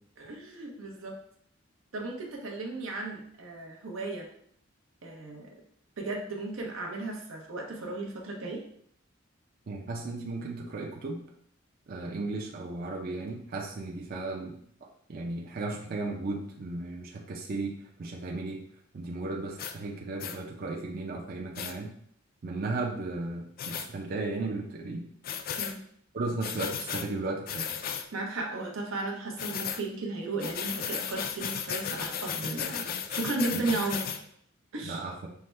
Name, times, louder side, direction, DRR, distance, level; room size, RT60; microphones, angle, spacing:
voice 1, 0.2-1.2 1.9-4.3 5.0-5.5 6.0-8.6 25.6-25.8 28.1-34.2 34.7-35.0, right 2 dB, 90° right, 0 dB, 0.8 m, -35 dB
voice 2, 9.7-11.2 11.9-18.6 18.9-21.9 22.4-25.1 26.1-27.7 33.5-33.6 34.8-35.3, right 2 dB, 45° right, 0 dB, 0.5 m, -35 dB
sound 1, 19.6-19.7 20.2-20.4 21.5-21.7 23.6-23.9 25.2-25.7 26.4-27.1 27.5-28.1 29.4-29.8 30.4-34.2, left 8 dB, 45° left, 0.3 m, -35 dB
5.6 x 2.1 x 3.2 m, 0.65 s
head